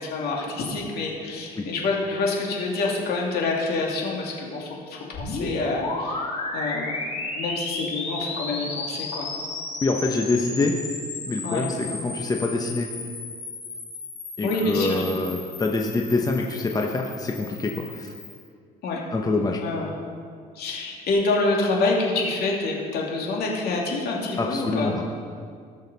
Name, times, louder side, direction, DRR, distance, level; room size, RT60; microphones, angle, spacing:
voice 1, 0.0-6.2 6.5-9.3 11.4-11.7 14.4-15.0 18.8-19.0 19.6-19.9 20.5-25.0, left 3 dB, 70° left, -1 dB, 2.4 m, -27 dB
sound 1, 5.1-18.5, left 3 dB, 40° left, 2.7 m, -34 dB
voice 2, 9.8-10.8 11.3-12.9 14.4-18.1 19.1-19.6 24.4-24.9, left 3 dB, 20° left, 1 dB, 0.9 m, -25 dB
18.5 x 6.5 x 4.1 m, 2.1 s
cardioid pair, 110°, 17 cm